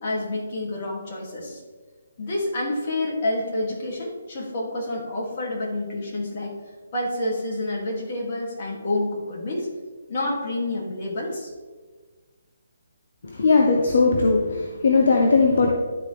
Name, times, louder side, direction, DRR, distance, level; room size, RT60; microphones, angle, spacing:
voice 1, 0.0-1.6 2.2-6.5 6.9-9.7 10.1-11.5, left 1 dB, 40° left, -3 dB, 2.5 m, -28 dB
voice 2, 13.2-15.7, left 4 dB, 60° left, 1 dB, 0.9 m, -19 dB
11.5 x 4.4 x 3.4 m, 1.4 s
figure-of-eight pair, 145°, 0 cm